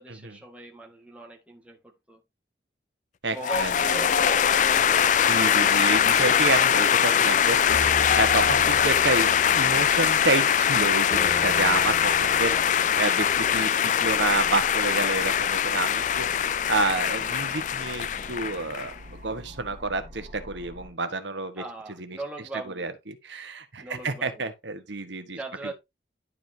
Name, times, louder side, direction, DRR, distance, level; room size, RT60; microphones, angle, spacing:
voice 1, 0.0-2.2 3.3-5.7 12.3-12.8 21.5-22.9 23.8-24.5 25.3-25.7, right 2 dB, 5° right, 1.7 m, -40 dB
voice 2, 3.2-3.7 4.9-5.0 5.2-12.6 13.0-21.6 22.0-22.2 22.7-25.4, right 3 dB, 75° right, 1.3 m, -29 dB
sound 1, 3.4-18.9, left 8 dB, 40° left, 0.3 m, -22 dB
sound 2, 3.5-20.9, equal, 40° right, 2.5 m, -45 dB
sound 3, 7.7-13.0, equal, 25° left, 2.7 m, -38 dB
11.0 x 5.1 x 2.8 m
head